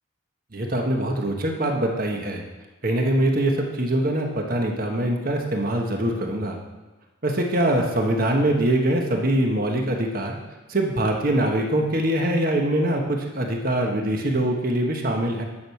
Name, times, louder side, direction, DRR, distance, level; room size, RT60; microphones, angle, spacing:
voice 1, 0.5-2.4 2.8-6.6 7.2-10.4 10.7-15.5, right 1 dB, 45° right, 2 dB, 1.3 m, -23 dB
10.0 x 6.4 x 5.8 m, 1.2 s
head